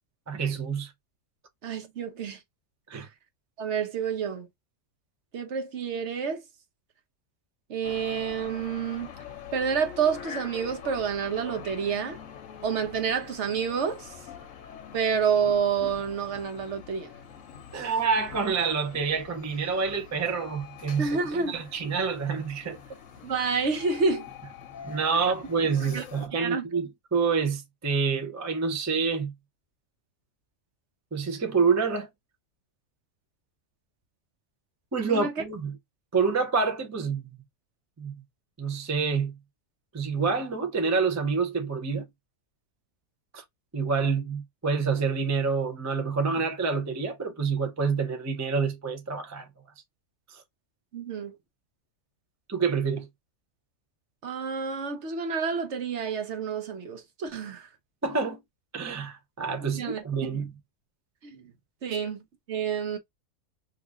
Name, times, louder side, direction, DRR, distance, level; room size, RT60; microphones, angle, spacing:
voice 1, 0.3-0.9 2.9-3.1 17.7-21.1 21.5-22.8 24.8-29.3 31.1-32.1 34.9-35.7 36.1-37.4 38.0-38.1 38.6-39.3 39.9-42.1 43.3-43.4 43.7-49.5 50.3-50.4 52.5-53.1 58.0-58.4 58.7-60.5, right 5 dB, 25° right, 0.3 m, -27 dB
voice 2, 1.6-2.4 3.6-4.5 5.3-6.4 7.7-9.1 9.5-12.2 12.6-14.2 14.9-17.1 17.7-17.9 21.0-21.6 23.2-24.3 25.8-26.0 26.3-26.7 35.1-35.4 50.9-51.4 54.2-57.7 59.6-60.0 60.3-60.5 61.2-61.5 61.8-63.0, right 6 dB, 60° right, 0.9 m, -29 dB
sound 1, 7.8-26.3, left 8 dB, 65° left, 1.0 m, -45 dB
3.0 x 2.5 x 3.5 m
omnidirectional pair, 1.5 m